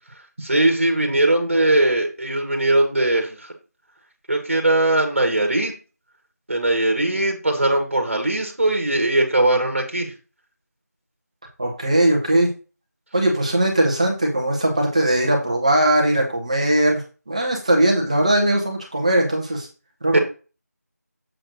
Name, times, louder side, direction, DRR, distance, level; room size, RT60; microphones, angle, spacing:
voice 1, 0.4-3.4 4.3-5.7 6.5-10.1 20.1-20.2, right 1 dB, 45° right, 3 dB, 1.8 m, -20 dB
voice 2, 11.6-12.5 13.1-19.7 20.0-20.2, right 1 dB, 25° right, 1 dB, 1.3 m, -19 dB
7.4 x 3.3 x 6.3 m, 0.33 s
figure-of-eight pair, 170°, 9 cm